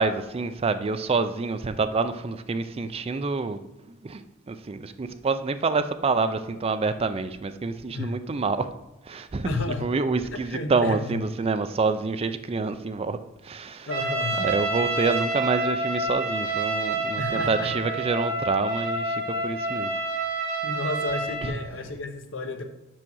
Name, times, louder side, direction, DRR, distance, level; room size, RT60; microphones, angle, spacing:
voice 1, 0.0-3.6 3.9-8.7 9.0-9.5 9.8-13.9 14.4-20.0 21.4-21.6, right 4 dB, 30° right, 0.4 m, -27 dB
voice 2, 9.4-9.8 10.3-11.2 13.9-14.4 17.2-17.8 20.6-22.6, left 3 dB, 65° left, 1.0 m, -32 dB
Trumpet, 13.9-21.6, right 2 dB, 80° right, 1.7 m, -28 dB
6.2 x 5.9 x 6.1 m
head